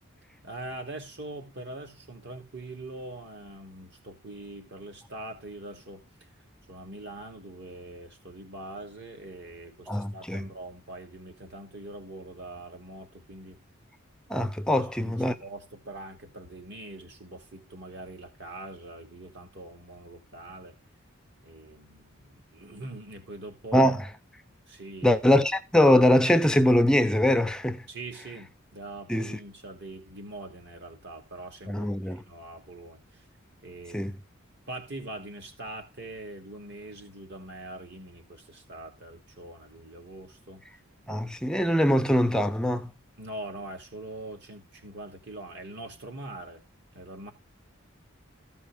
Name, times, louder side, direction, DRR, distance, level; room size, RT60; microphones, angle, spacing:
voice 1, 0.4-6.0 6.7-13.6 14.8-20.8 21.4-23.9 24.7-25.2 27.9-33.2 33.6-34.1 34.7-40.6 43.2-46.6 46.9-47.3, right 2 dB, 55° right, 2.9 m, -43 dB
voice 2, 9.9-10.4 14.3-15.3 23.7-24.0 25.0-27.8 29.1-29.4 31.7-32.2 33.9-34.1 41.1-42.9, left 1 dB, 5° left, 0.6 m, -22 dB
15.0 x 5.4 x 3.5 m
head